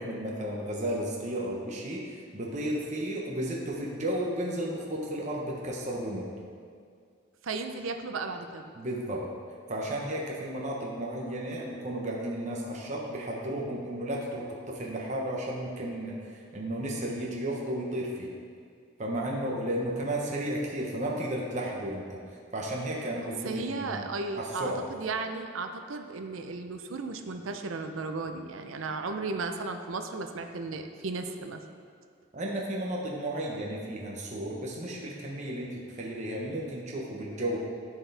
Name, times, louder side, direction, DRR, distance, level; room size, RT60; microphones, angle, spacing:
voice 1, 0.0-6.3 8.7-9.3 9.7-18.3 19.0-22.2 22.5-24.1 24.4-24.9 32.3-37.6, right 1 dB, 35° right, -3 dB, 0.9 m, -33 dB
voice 2, 7.4-8.6 23.4-31.6, right 3 dB, 85° right, 6 dB, 0.6 m, -35 dB
14.0 x 4.6 x 3.4 m, 2.2 s
head